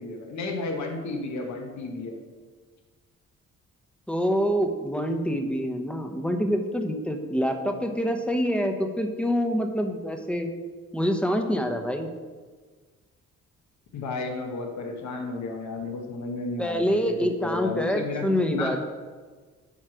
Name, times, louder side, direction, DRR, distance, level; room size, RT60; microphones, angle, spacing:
voice 1, 0.0-2.2 13.9-18.2 18.5-18.8, left 3 dB, 70° left, 2 dB, 1.4 m, -32 dB
voice 2, 4.1-10.5 10.9-12.1 16.6-18.8, equal, 5° left, 4 dB, 0.9 m, -26 dB
9.3 x 3.2 x 6.1 m, 1.4 s
cardioid pair, 90°, 30 cm